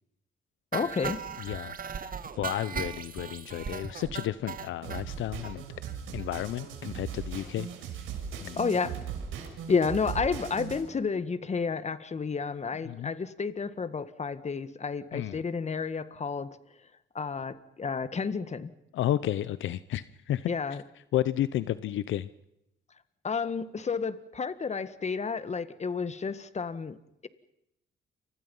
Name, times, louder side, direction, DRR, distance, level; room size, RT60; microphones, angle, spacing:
voice 1, 0.7-1.2 8.6-9.0 9.7-16.5 17.1-18.7 20.5-20.8 23.2-27.3, left 5 dB, 35° left, 13 dB, 1.9 m, -31 dB
sound 1, 0.7-5.0 5.4-5.5 5.9-6.0 6.2-6.3 6.6-6.7, right 6 dB, 45° right, 1.9 m, -37 dB
voice 2, 1.4-1.8 2.4-5.6 6.1-7.7 8.4-8.6 12.9-13.1 15.1-15.4 18.9-20.5 21.1-22.3, left 12 dB, 75° left, 16 dB, 0.9 m, -32 dB
sound 2, 4.8-10.8, right 7 dB, 90° right, 6.4 m, -38 dB
29.5 x 25.0 x 5.6 m, 0.82 s
cardioid pair, 90°, 20 cm